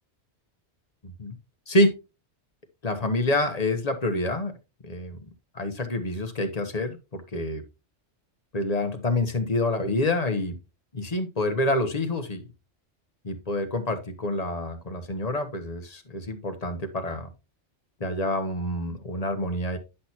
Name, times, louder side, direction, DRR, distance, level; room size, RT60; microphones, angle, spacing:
voice 1, 1.0-1.3 1.7-1.9 2.8-4.5 4.8-5.3 5.5-7.6 8.5-10.6 10.9-12.4 13.2-17.3 18.0-19.8, left 1 dB, 35° left, 7 dB, 1.2 m, -27 dB
10.0 x 6.1 x 2.8 m, 0.27 s
omnidirectional pair, 1.1 m